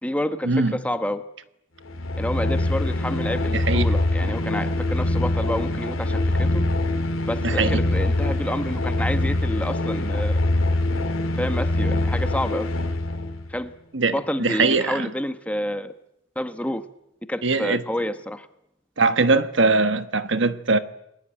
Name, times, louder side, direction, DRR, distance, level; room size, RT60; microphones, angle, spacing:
voice 1, 0.0-1.2 2.2-6.6 7.3-10.4 11.4-12.7 13.5-13.7 14.1-15.9 16.3-16.8 17.3-18.5, left 1 dB, 5° left, 1.2 m, -29 dB
sound 1, 1.8-13.5, left 2 dB, 90° left, 3.0 m, -24 dB
voice 2, 3.5-3.9 7.4-7.8 13.9-14.1 14.4-15.1 17.4-17.8 19.0-20.8, right 3 dB, 65° right, 1.4 m, -21 dB
30.0 x 21.0 x 8.9 m
head